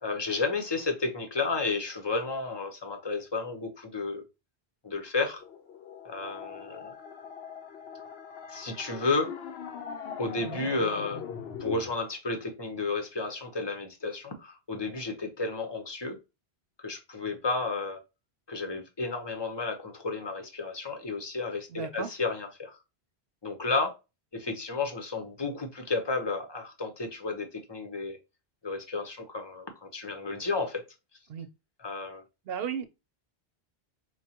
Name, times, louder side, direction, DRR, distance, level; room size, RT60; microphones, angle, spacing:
voice 1, 0.0-4.2 4.8-5.4 6.0-6.9 8.5-9.3 10.2-11.2 11.6-16.2 16.8-18.0 18.5-22.8 23.4-23.9 24.3-28.2 28.6-30.8 31.8-32.2, left 3 dB, 30° left, 0.7 m, -32 dB
sound 1, 5.4-11.9, left 7 dB, 75° left, 0.9 m, -41 dB
voice 2, 21.7-22.1 31.3-31.5 32.5-32.8, right 7 dB, 70° right, 0.8 m, -35 dB
4.6 x 2.2 x 2.8 m
omnidirectional pair, 1.1 m